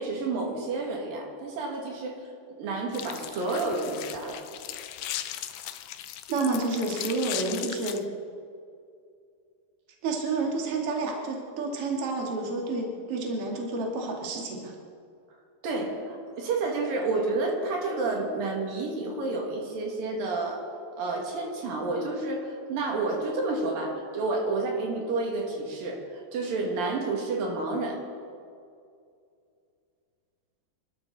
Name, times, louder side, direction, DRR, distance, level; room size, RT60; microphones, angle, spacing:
voice 1, 0.0-2.2 2.6-4.4 15.6-20.6 21.0-28.0, right 3 dB, 80° right, 0 dB, 3.9 m, -30 dB
sound 1, 2.9-8.0, left 12 dB, 80° left, 1.6 m, -37 dB
voice 2, 6.3-8.0 10.0-14.7, right 3 dB, 45° right, 0 dB, 2.7 m, -29 dB
26.0 x 12.5 x 4.1 m, 2.4 s
omnidirectional pair, 4.0 m